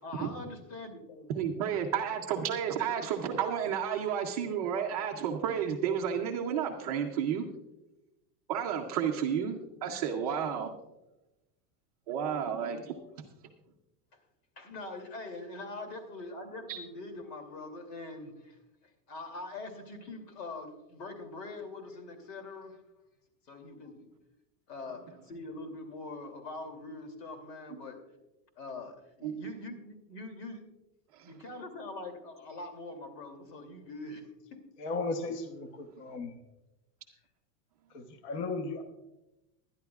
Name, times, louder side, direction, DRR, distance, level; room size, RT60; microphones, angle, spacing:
voice 1, 0.0-1.4 14.6-18.6 19.1-22.8 23.5-24.1 24.7-28.0 28.6-30.7 31.2-34.6, left 2 dB, 80° left, 6 dB, 2.8 m, -43 dB
voice 2, 1.3-7.5 8.5-10.7 12.1-13.0 16.7-16.8 27.7-27.8 29.2-29.4 31.1-31.3, right 8 dB, 25° right, 1 dB, 0.4 m, -31 dB
voice 3, 34.8-36.3 37.9-38.8, left 3 dB, 45° left, 7 dB, 1.0 m, -35 dB
21.0 x 11.0 x 2.3 m, 0.96 s
supercardioid pair, 175°, 49 cm